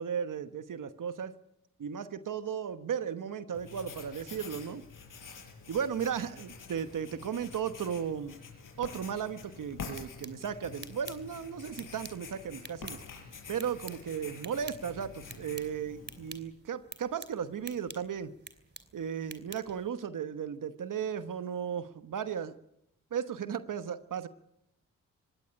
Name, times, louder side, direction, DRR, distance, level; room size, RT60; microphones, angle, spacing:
voice 1, 0.0-1.3 1.8-4.8 5.7-8.4 8.8-13.0 13.5-18.3 18.9-22.6 23.1-24.3, right 8 dB, 65° right, 12 dB, 1.2 m, -35 dB
Writing, 3.5-16.4, left 5 dB, 70° left, 6.2 m, -47 dB
sound 1, 9.7-19.9, right 3 dB, 30° right, 2.9 m, -50 dB
20.0 x 17.0 x 10.0 m, 0.79 s
cardioid pair, 65°, 34 cm